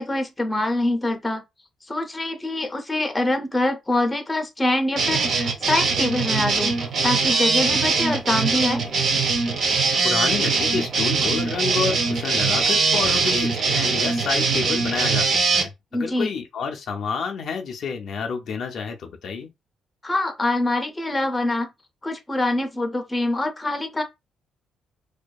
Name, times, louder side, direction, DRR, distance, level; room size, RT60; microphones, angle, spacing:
voice 1, 0.0-1.4 1.9-8.8 15.9-16.3 20.0-21.7 22.0-24.0, left 2 dB, 15° left, 0.6 m, -24 dB
sound 1, 4.9-15.6, right 4 dB, 60° right, 0.7 m, -22 dB
voice 2, 10.0-19.5, left 5 dB, 65° left, 0.4 m, -29 dB
2.6 x 2.2 x 2.3 m
cardioid pair, 90°, 0 cm